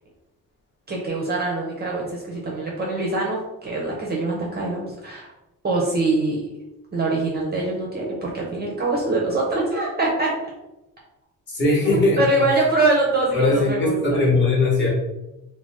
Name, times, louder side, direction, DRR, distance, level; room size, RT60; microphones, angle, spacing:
voice 1, 0.9-5.3 5.6-6.4 6.9-10.3 11.8-14.2, right 2 dB, 30° right, -3 dB, 0.5 m, -24 dB
voice 2, 11.5-12.2 13.3-14.9, left 2 dB, 35° left, -4 dB, 0.9 m, -19 dB
2.5 x 2.0 x 3.3 m, 0.95 s
cardioid pair, 170°, 33 cm